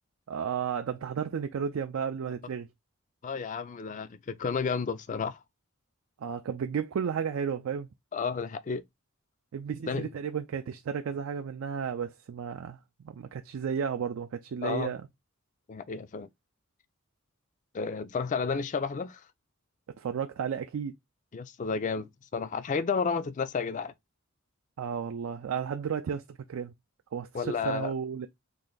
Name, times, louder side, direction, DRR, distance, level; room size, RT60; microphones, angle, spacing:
voice 1, 0.3-2.7 6.2-7.9 9.5-12.8 13.0-15.0 20.0-20.9 24.8-26.7 27.1-28.3, right 7 dB, 75° right, 0.4 m, -33 dB
voice 2, 3.2-5.4 8.1-8.8 9.9-10.1 14.6-14.9 15.7-16.3 17.7-19.2 21.3-23.9 27.3-27.9, left 5 dB, 35° left, 0.4 m, -31 dB
3.2 x 2.5 x 3.7 m
head